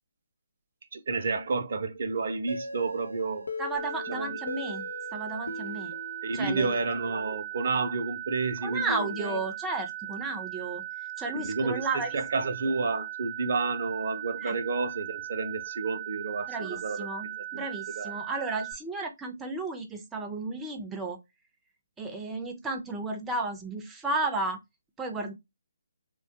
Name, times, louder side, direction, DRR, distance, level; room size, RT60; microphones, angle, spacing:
voice 1, 0.9-3.5 4.1-4.4 6.2-9.4 11.4-11.8 12.1-17.1 17.5-17.7 18.0-18.1, right 4 dB, 55° right, 0.6 m, -30 dB
sound 1, 2.5-7.2, left 2 dB, 85° left, 0.6 m, -40 dB
voice 2, 3.6-5.9 6.3-6.8 8.6-10.8 11.2-12.2 14.4-14.6 16.5-21.2 22.0-24.6 25.0-25.3, right 3 dB, 10° right, 0.5 m, -33 dB
sound 2, 3.8-18.7, right 12 dB, 25° left, 0.8 m, -39 dB
3.0 x 2.2 x 2.7 m
figure-of-eight pair, 145°, 0 cm